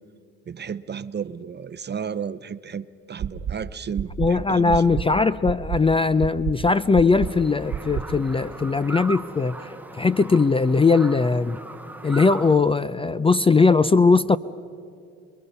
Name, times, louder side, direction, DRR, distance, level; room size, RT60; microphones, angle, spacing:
voice 1, 0.5-5.0, right 7 dB, 35° right, 15 dB, 0.7 m, -33 dB
sound 1, 3.2-3.5 3.9-4.3 4.7-5.0 5.4-5.8 6.2-6.5 6.9-7.3 7.7-8.0, right 10 dB, 65° right, 1.4 m, -27 dB
voice 2, 4.2-11.6 12.0-14.4, left 4 dB, 20° left, 16 dB, 0.4 m, -20 dB
sound 2, 7.1-12.6, right 2 dB, 5° right, 1.3 m, -39 dB
28.0 x 22.5 x 5.5 m, 2.4 s
cardioid pair, 90°, 30 cm